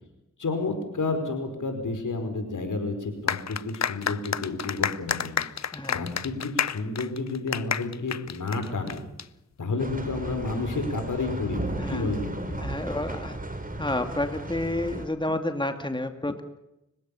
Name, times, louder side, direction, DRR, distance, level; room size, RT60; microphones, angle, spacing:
voice 1, 0.4-5.4 5.9-9.0 9.6-12.6, left 3 dB, 80° left, 7 dB, 5.0 m, -30 dB
sound 1, 3.3-9.2, left 7 dB, 60° left, 0.7 m, -30 dB
voice 2, 5.7-6.1 11.8-12.1 12.6-13.4 13.8-16.4, left 1 dB, 15° left, 7 dB, 2.4 m, -30 dB
sound 2, 9.8-15.1, right 1 dB, 25° right, 4.5 m, -35 dB
30.0 x 16.5 x 7.1 m, 0.89 s
cardioid pair, 45°, 30 cm